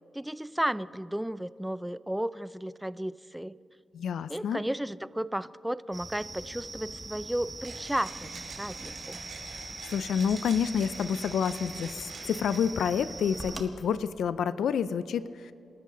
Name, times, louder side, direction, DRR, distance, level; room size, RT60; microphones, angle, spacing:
voice 1, 0.1-3.6 4.3-9.2, right 1 dB, 5° right, 17 dB, 0.4 m, -33 dB
voice 2, 3.9-4.6 9.8-15.5, left 7 dB, 85° left, 14 dB, 0.4 m, -29 dB
sound 1, 5.9-13.6, right 2 dB, 25° right, 1.5 m, -42 dB
Mechanisms, 7.6-12.8, right 4 dB, 85° right, 4.6 m, -47 dB
28.0 x 13.0 x 3.9 m, 2.8 s
cardioid pair, 105°, 0 cm